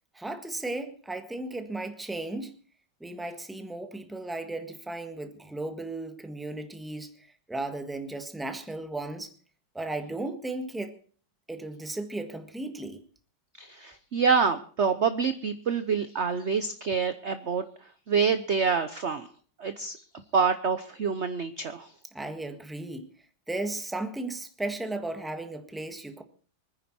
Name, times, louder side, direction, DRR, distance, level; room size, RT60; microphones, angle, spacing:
voice 1, 0.1-2.5 3.0-9.3 9.7-10.9 11.5-13.0 22.1-23.1 23.5-26.2, right 2 dB, ahead, 7 dB, 1.4 m, -35 dB
voice 2, 13.6-17.6 18.1-19.3 19.6-20.0 20.3-21.9, right 5 dB, 50° right, 10 dB, 0.9 m, -26 dB
25.0 x 10.0 x 4.3 m, 0.43 s
omnidirectional pair, 2.1 m